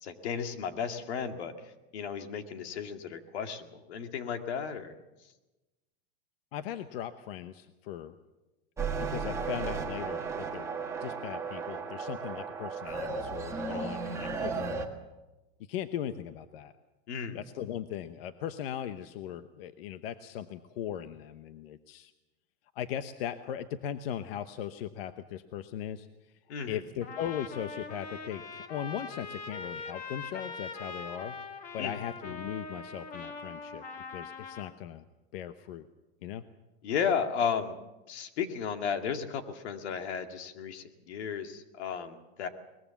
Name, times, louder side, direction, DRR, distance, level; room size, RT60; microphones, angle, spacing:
voice 1, 0.0-1.5 1.9-4.9 13.7-14.2 14.5-14.6 17.1-17.4 26.5-26.8 31.8-32.0 36.8-37.8 38.1-42.5, left 7 dB, 90° left, 7 dB, 2.3 m, -34 dB
voice 2, 6.5-8.2 9.0-10.7 11.0-14.8 15.7-16.7 17.3-22.1 22.7-26.1 26.7-31.4 31.7-33.8 34.1-35.0 35.3-35.9 36.2-36.4, left 10 dB, 65° left, 11 dB, 1.0 m, -38 dB
sound 1, 8.8-14.9, right 4 dB, 10° right, 1.5 m, -35 dB
Trumpet, 27.0-34.7, left 4 dB, 25° left, 1.4 m, -42 dB
22.5 x 20.5 x 7.1 m, 1.1 s
supercardioid pair, 170°, 32 cm